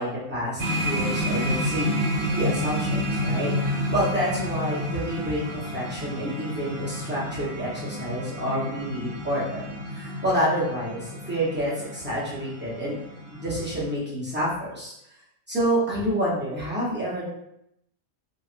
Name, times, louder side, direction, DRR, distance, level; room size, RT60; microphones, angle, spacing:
voice 1, 0.0-12.9 13.3-14.9 15.5-17.2, equal, 10° right, -8 dB, 0.5 m, -28 dB
sound 1, 0.6-14.0, equal, 65° right, 0.6 m, -30 dB
2.9 x 2.8 x 2.5 m, 0.79 s
omnidirectional pair, 1.6 m